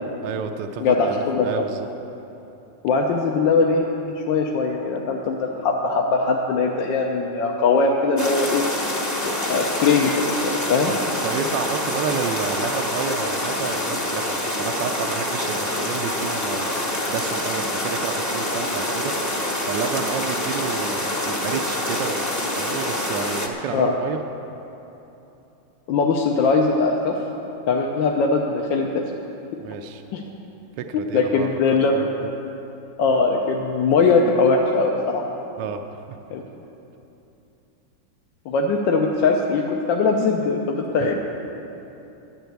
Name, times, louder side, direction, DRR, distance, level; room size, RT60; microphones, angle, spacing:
voice 1, 0.2-1.9 10.9-22.2 22.6-24.2 29.6-30.0 30.8-31.5 31.9-32.1 35.6-36.2 41.0-41.2, right 7 dB, 75° right, 5 dB, 1.2 m, -30 dB
voice 2, 1.3-1.6 2.8-3.8 4.3-8.6 9.2-10.9 23.7-23.9 25.9-27.2 27.7-29.0 30.1-30.2 30.9-31.9 33.0-35.2 36.3-36.4 38.5-41.2, left 4 dB, 75° left, 0 dB, 1.5 m, -21 dB
sound 1, 8.2-23.5, left 1 dB, 20° left, 0.5 m, -26 dB
10.5 x 9.4 x 8.0 m, 2.9 s
omnidirectional pair, 2.2 m